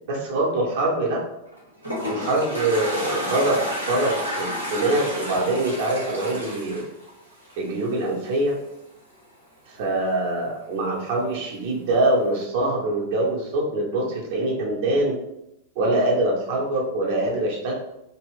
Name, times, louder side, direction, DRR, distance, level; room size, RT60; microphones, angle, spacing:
voice 1, 0.1-1.2 2.0-6.8 7.6-8.6 9.7-15.2 15.8-17.7, right 2 dB, 50° right, -2 dB, 0.8 m, -24 dB
Toilet flush, 1.5-7.8, equal, 90° right, 0.8 m, -31 dB
2.4 x 2.2 x 3.5 m, 0.83 s
figure-of-eight pair, 90°, 0 cm